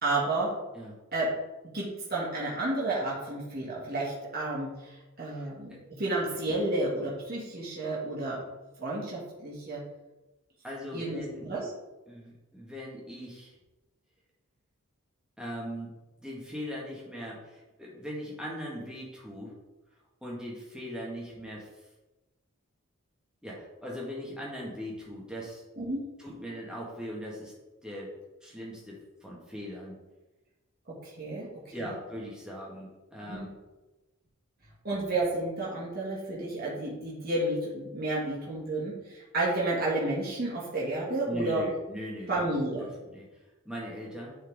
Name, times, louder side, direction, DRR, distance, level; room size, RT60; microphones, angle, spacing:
voice 1, 0.0-0.5 1.1-1.3 1.7-8.4 8.8-9.8 10.9-11.7 25.8-26.1 30.9-31.9 33.2-33.5 34.8-41.6 42.3-42.9, right 2 dB, 45° right, -7 dB, 2.1 m, -31 dB
voice 2, 5.2-5.8 10.6-11.5 12.1-13.5 15.4-15.9 16.2-19.5 20.2-21.7 23.4-25.6 26.2-27.5 27.8-28.1 28.4-29.9 31.7-33.6 41.3-42.5 43.1-43.3 43.7-44.4, equal, 5° right, -5 dB, 1.8 m, -40 dB
10.0 x 4.6 x 3.7 m, 1.1 s
head